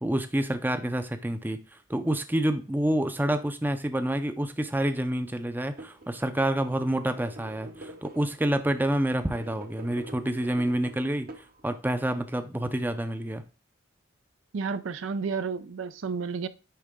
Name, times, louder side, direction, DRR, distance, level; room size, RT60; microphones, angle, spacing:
voice 1, 0.0-1.6 1.9-13.4, right 1 dB, 10° right, 0.5 m, -28 dB
sound 1, 5.8-6.1 6.6-8.5 9.2-11.9, right 1 dB, 45° right, 0.9 m, -46 dB
voice 2, 14.5-16.5, right 5 dB, 80° right, 0.5 m, -31 dB
10.0 x 3.7 x 3.7 m
head